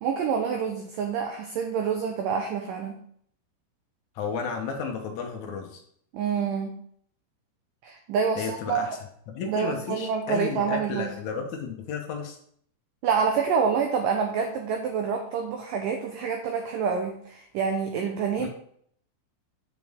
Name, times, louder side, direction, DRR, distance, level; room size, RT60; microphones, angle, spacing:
voice 1, 0.0-3.0 6.1-6.8 7.8-8.9 9.5-11.1 13.0-18.5, right 6 dB, 75° right, 3 dB, 2.1 m, -27 dB
voice 2, 4.2-5.8 8.4-9.0 9.3-12.4 18.4-18.5, left 5 dB, 75° left, 3 dB, 1.7 m, -33 dB
9.9 x 6.4 x 3.6 m, 0.64 s
omnidirectional pair, 4.8 m